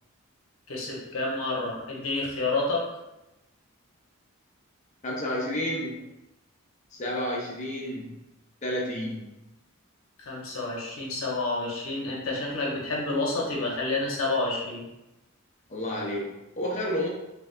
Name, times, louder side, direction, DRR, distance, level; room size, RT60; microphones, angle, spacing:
voice 1, 0.7-2.8 10.2-14.8, left 2 dB, 70° left, -3 dB, 0.8 m, -29 dB
voice 2, 5.0-6.1 6.9-8.1 8.6-9.3 15.7-17.1, left 1 dB, 35° left, -3 dB, 0.6 m, -31 dB
3.3 x 3.2 x 2.4 m, 0.93 s
head